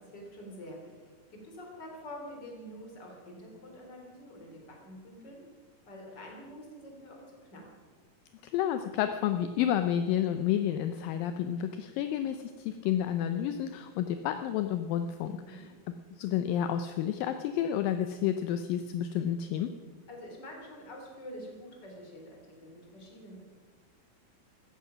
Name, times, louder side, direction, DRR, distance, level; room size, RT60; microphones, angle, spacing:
voice 1, 0.0-5.4 5.9-7.2 7.5-7.7 15.2-15.6 20.1-23.4, equal, 30° left, 0 dB, 3.8 m, -47 dB
voice 2, 8.4-15.6 16.2-19.7, left 10 dB, 80° left, 8 dB, 2.3 m, -30 dB
16.0 x 14.0 x 5.8 m, 1.5 s
omnidirectional pair, 4.2 m